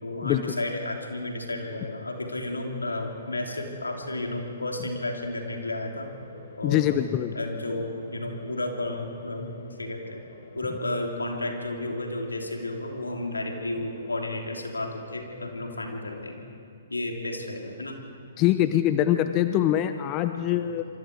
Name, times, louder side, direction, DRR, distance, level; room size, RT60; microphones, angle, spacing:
voice 1, 0.0-6.1 6.6-7.0 7.3-10.2 10.5-16.4 16.9-18.0 20.5-20.7, left 2 dB, 85° left, 1 dB, 3.2 m, -32 dB
sound 1, 2.2-16.3, left 4 dB, 60° left, 3.2 m, -48 dB
voice 2, 6.6-7.4 18.4-20.9, left 12 dB, 30° left, 10 dB, 0.7 m, -23 dB
27.0 x 24.0 x 4.7 m, 2.5 s
figure-of-eight pair, 125°, 0 cm